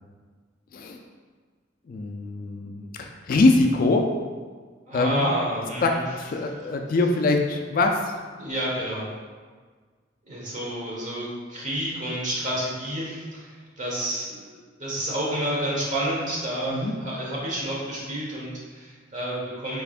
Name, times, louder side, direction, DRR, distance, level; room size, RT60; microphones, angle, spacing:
voice 1, 1.9-4.1 4.9-5.3 5.8-8.1 16.7-16.9, left 2 dB, 50° left, 3 dB, 0.3 m, -23 dB
voice 2, 4.9-6.0 8.4-9.1 10.2-19.8, right 1 dB, 40° right, -5 dB, 1.2 m, -30 dB
4.9 x 3.5 x 2.4 m, 1.5 s
head